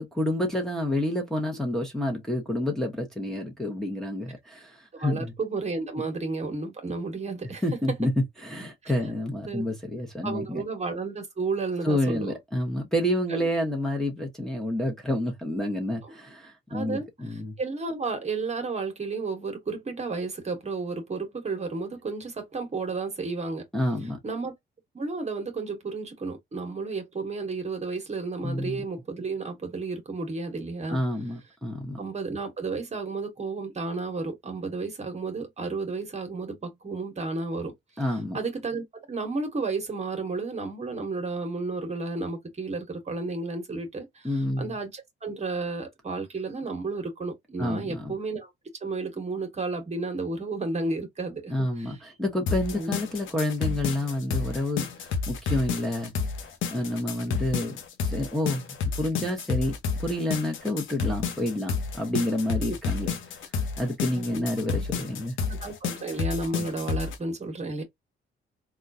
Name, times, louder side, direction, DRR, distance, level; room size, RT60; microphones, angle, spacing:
voice 1, 0.0-5.3 7.6-8.1 8.4-10.6 11.8-17.6 23.7-24.2 28.4-28.8 30.9-32.0 38.0-38.4 44.2-44.8 47.6-48.1 51.5-56.1 56.7-57.8 58.0-63.1 63.8-65.4, left 1 dB, ahead, 1.0 m, -29 dB
voice 2, 4.9-7.6 8.8-8.9 9.5-9.7 10.2-12.3 13.3-13.4 16.0-16.1 16.7-23.6 24.2-24.5 24.9-31.0 32.0-37.7 38.3-48.5 48.8-52.0 52.8-52.9 64.1-64.5 65.4-67.8, right 3 dB, 35° right, 1.2 m, -32 dB
sound 1, 52.5-67.2, left 5 dB, 80° left, 0.9 m, -30 dB
3.6 x 2.3 x 2.6 m
cardioid pair, 90°, 20 cm